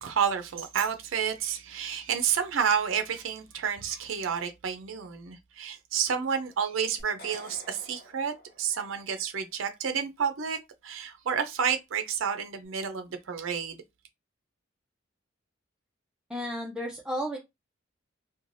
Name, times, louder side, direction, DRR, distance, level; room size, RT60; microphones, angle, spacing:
voice 1, 0.0-10.6 10.8-13.8, right 7 dB, 80° right, 0.5 m, -30 dB
sound 1, 7.0-9.3, left 1 dB, 50° left, 0.7 m, -50 dB
voice 2, 16.3-17.4, equal, 5° right, 0.4 m, -33 dB
3.1 x 2.1 x 2.5 m
head